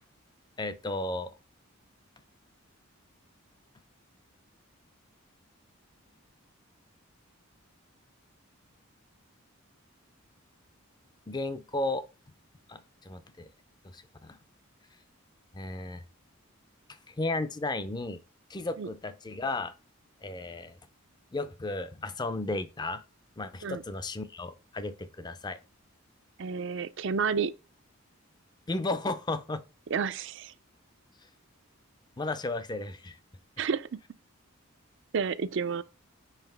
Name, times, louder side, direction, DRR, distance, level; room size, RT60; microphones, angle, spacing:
voice 1, 0.6-1.3 11.3-12.0 12.7-13.5 13.9-14.4 15.5-16.0 17.1-18.2 18.5-19.7 20.2-20.8 21.3-23.0 23.4-25.6 28.7-29.6 32.2-33.2, left 2 dB, 20° left, 0.4 m, -34 dB
voice 2, 26.4-27.5 29.9-30.5 33.6-33.9 35.1-35.8, right 5 dB, 55° right, 0.4 m, -30 dB
5.7 x 4.9 x 3.4 m
head